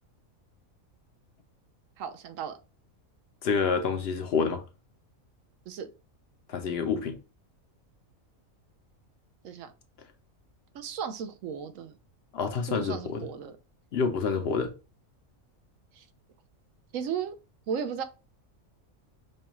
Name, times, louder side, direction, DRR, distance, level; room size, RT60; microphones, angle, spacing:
voice 1, 2.0-2.6 5.7-5.9 9.4-9.7 10.7-12.0 12.7-13.5 16.0-16.1 16.9-17.4 17.7-18.0, right 7 dB, 75° right, 1.0 m, -35 dB
voice 2, 3.4-4.6 6.5-7.2 12.3-13.3 13.9-14.7, left 5 dB, 60° left, 0.7 m, -28 dB
5.4 x 2.3 x 2.9 m
omnidirectional pair, 1.4 m